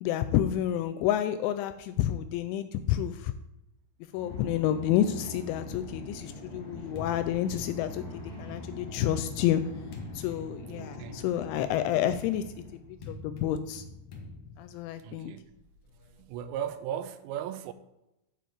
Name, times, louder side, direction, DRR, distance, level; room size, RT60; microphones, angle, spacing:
voice 1, 0.0-3.3 4.1-9.6 10.1-12.4 12.7-12.8 13.1-13.8 14.6-15.3, left 11 dB, 85° left, 2.7 m, -29 dB
sound 1, 4.1-13.1, left 1 dB, 25° left, 1.2 m, -43 dB
sound 2, 6.9-8.4 9.2-16.2, left 3 dB, 70° left, 1.8 m, -48 dB
voice 2, 10.8-11.2 15.0-15.5 16.2-17.7, right 9 dB, 85° right, 3.2 m, -37 dB
8.5 x 5.1 x 7.6 m
omnidirectional pair, 5.7 m